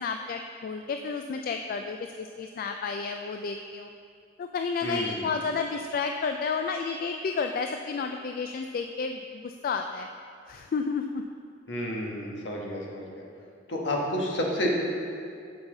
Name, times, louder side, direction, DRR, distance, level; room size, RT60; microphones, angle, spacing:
voice 1, 0.0-3.9 4.4-10.1 10.5-11.2, left 5 dB, 50° left, 5 dB, 0.3 m, -31 dB
voice 2, 4.8-5.3 11.7-13.0 13.7-14.7, equal, 70° left, -1 dB, 1.4 m, -30 dB
10.5 x 5.7 x 3.9 m, 2.4 s
head